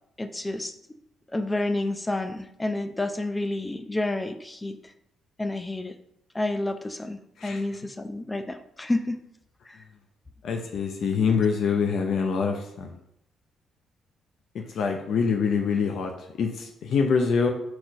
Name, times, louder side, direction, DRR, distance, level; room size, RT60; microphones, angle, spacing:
voice 1, 0.2-0.7 1.3-4.8 5.4-5.9 6.3-9.2 9.7-9.8 11.3-11.4, left 2 dB, 15° left, 8 dB, 0.6 m, -29 dB
voice 2, 10.4-12.9 14.5-16.1 16.4-17.5, left 5 dB, 70° left, 3 dB, 0.7 m, -25 dB
4.4 x 4.3 x 5.1 m, 0.75 s
cardioid pair, 90°, 0 cm